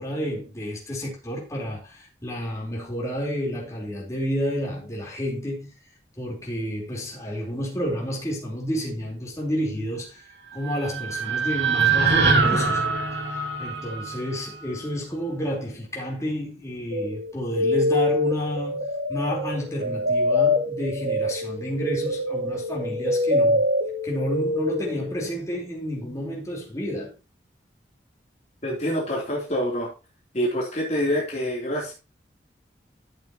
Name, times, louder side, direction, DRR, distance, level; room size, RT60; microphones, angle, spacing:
voice 1, 0.0-5.7 6.2-10.2 10.5-12.8 13.3-23.7 24.0-27.1, equal, 15° left, 4.1 m, -30 dB
sound 1, 10.5-14.7, right 4 dB, 80° right, 2.1 m, -24 dB
sound 2, 16.9-25.2, left 1 dB, 65° right, 1.5 m, -25 dB
voice 2, 28.6-29.9 30.3-31.9, equal, 40° left, 3.4 m, -26 dB
14.0 x 7.1 x 3.0 m
head